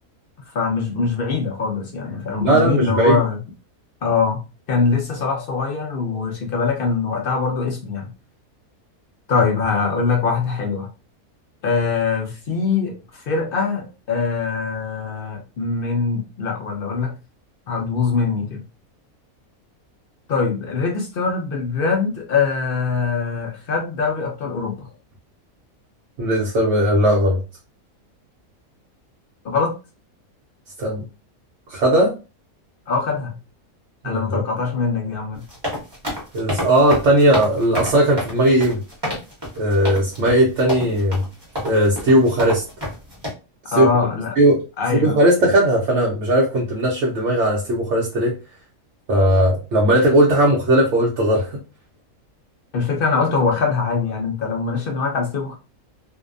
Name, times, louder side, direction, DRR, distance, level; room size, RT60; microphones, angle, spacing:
voice 1, 0.5-3.4 4.0-4.4 4.7-8.1 9.3-10.9 11.6-17.1 17.7-18.6 20.3-24.9 29.4-29.7 32.9-33.4 34.0-35.4 43.7-44.4 44.8-45.1 52.7-55.6, left 5 dB, 70° left, 1 dB, 0.5 m, -22 dB
voice 2, 2.4-3.2 26.2-27.4 30.8-31.0 31.7-32.1 34.0-34.4 36.3-38.8 39.6-41.2 41.6-42.6 43.7-43.9 44.4-44.6 44.9-48.3 49.1-51.6, right 1 dB, 60° right, -3 dB, 0.8 m, -17 dB
sound 1, 35.3-43.3, equal, 20° right, 0.8 m, -28 dB
2.6 x 2.1 x 2.4 m, 0.30 s
omnidirectional pair, 1.5 m